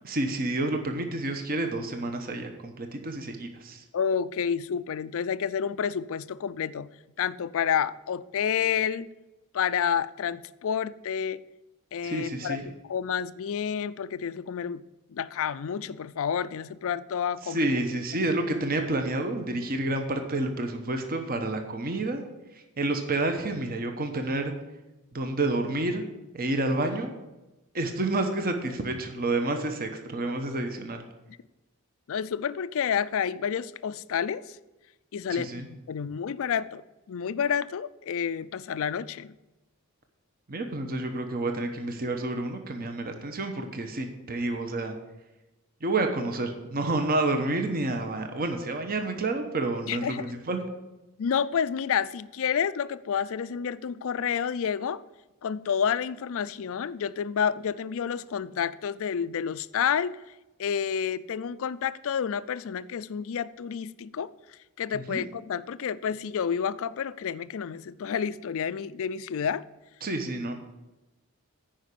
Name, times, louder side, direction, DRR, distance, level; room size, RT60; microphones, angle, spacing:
voice 1, 0.0-3.8 12.0-12.6 17.4-22.2 22.5-24.5 25.1-26.0 26.3-27.1 27.7-31.0 35.3-35.7 40.5-44.9 45.8-50.6 64.9-65.2 70.0-70.5, right 2 dB, 40° right, 1.0 m, -29 dB
voice 2, 3.9-6.9 7.2-9.1 9.5-11.4 11.9-14.8 15.1-17.7 32.1-34.4 35.1-36.8 37.1-39.3 49.9-50.2 51.2-55.0 55.4-60.2 60.6-64.3 64.8-69.6, left 7 dB, 65° left, 0.4 m, -29 dB
10.0 x 5.1 x 8.3 m
head